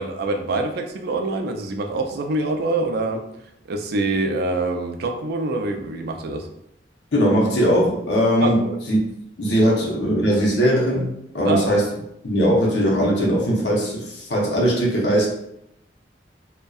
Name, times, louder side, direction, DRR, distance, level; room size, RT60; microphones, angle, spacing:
voice 1, 0.0-3.2 3.7-6.5 8.4-8.8 9.6-9.7 11.4-11.7, right 2 dB, 60° right, 4 dB, 0.3 m, -25 dB
voice 2, 7.1-8.6 8.9-9.0 9.4-11.9 12.2-15.3, equal, 75° left, -3 dB, 0.7 m, -19 dB
2.6 x 2.1 x 2.3 m, 0.77 s
head